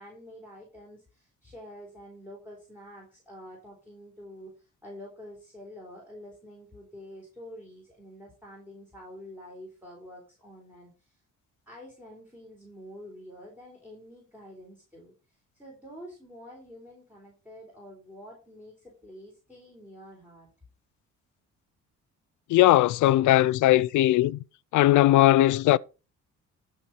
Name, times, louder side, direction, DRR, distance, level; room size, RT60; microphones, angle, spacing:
voice 1, 0.0-11.2 11.7-20.5, equal, 5° right, 4.0 m, -47 dB
voice 2, 22.5-24.4 24.7-25.8, left 15 dB, 70° left, 0.5 m, -19 dB
12.5 x 4.5 x 5.4 m
cardioid pair, 115°, 31 cm